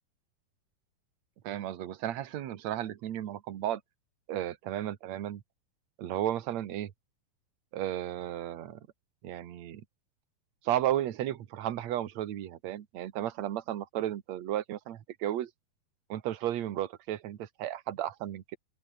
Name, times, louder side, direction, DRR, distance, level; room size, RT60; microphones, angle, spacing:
voice 1, 1.4-3.8 4.3-5.4 6.0-6.9 7.7-8.8 9.2-9.8 10.6-15.5 16.1-18.6, right 12 dB, 60° right, 2.5 m, -34 dB
open air
omnidirectional pair, 3.9 m